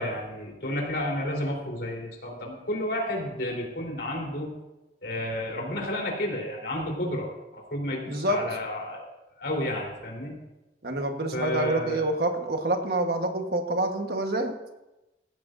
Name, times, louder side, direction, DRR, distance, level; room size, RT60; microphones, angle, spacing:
voice 1, 0.0-4.5 5.0-7.3 7.7-9.0 9.4-10.3 11.3-12.1, left 1 dB, 70° left, -1 dB, 3.8 m, -31 dB
voice 2, 8.1-8.5 10.8-14.6, right 1 dB, 60° right, 5 dB, 1.3 m, -27 dB
18.0 x 15.0 x 2.6 m, 1.0 s
head